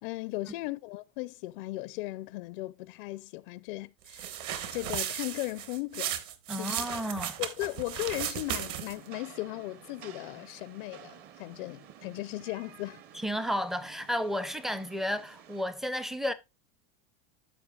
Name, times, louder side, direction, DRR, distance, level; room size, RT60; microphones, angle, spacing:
voice 1, 0.0-4.3 4.7-6.2 6.5-6.8 7.4-13.0, left 20 dB, 65° left, 0.5 m, -37 dB
sound 1, 4.1-9.1, right 10 dB, 50° right, 1.2 m, -35 dB
voice 2, 6.5-7.3 13.1-16.3, equal, ahead, 0.4 m, -32 dB
Rain, 8.4-15.6, right 9 dB, 35° right, 0.8 m, -52 dB
13.5 x 5.2 x 2.3 m
supercardioid pair, 160°, 29 cm